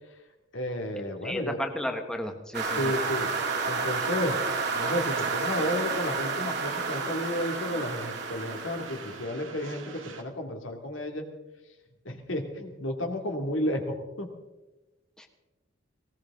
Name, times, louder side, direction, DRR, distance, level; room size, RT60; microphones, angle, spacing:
voice 1, 0.5-1.6 2.7-3.3 3.7-4.4 4.7-11.2 12.0-14.3, left 1 dB, 75° left, 4 dB, 2.3 m, -32 dB
voice 2, 1.2-2.9 15.2-15.3, equal, 5° left, 4 dB, 1.3 m, -33 dB
sound 1, 2.5-9.2, right 4 dB, 60° right, 2.0 m, -31 dB
Train, 2.6-10.2, right 3 dB, 85° right, 2.0 m, -43 dB
19.0 x 18.0 x 3.7 m, 1.1 s
head